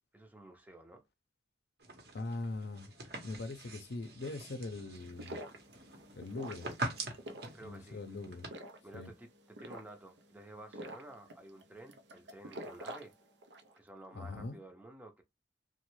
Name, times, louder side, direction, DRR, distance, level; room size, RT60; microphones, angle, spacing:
voice 1, 0.1-1.0 7.5-8.0 8.8-13.1 13.8-15.2, right 1 dB, 10° right, 0.5 m, -52 dB
sound 1, 1.8-8.5, right 2 dB, 65° right, 0.9 m, -44 dB
voice 2, 2.1-2.9 3.2-5.4 6.1-6.7 7.6-8.5 8.9-9.1 14.1-14.6, left 2 dB, 70° left, 0.5 m, -41 dB
sound 2, 4.9-13.8, right 1 dB, 85° right, 0.5 m, -48 dB
3.1 x 2.1 x 3.0 m
head